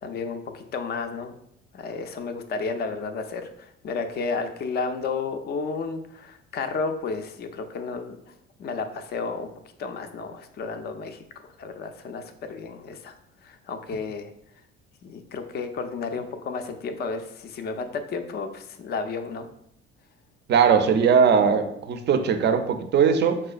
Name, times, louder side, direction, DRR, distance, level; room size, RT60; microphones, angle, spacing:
voice 1, 0.0-1.3 1.7-8.2 8.6-9.5 9.8-11.2 11.6-13.1 13.4-14.3 15.0-19.5, left 4 dB, 35° left, 7 dB, 0.4 m, -32 dB
voice 2, 20.5-23.4, right 6 dB, 35° right, 8 dB, 0.4 m, -20 dB
4.1 x 2.2 x 2.4 m, 0.74 s
hypercardioid pair, 55°, 31 cm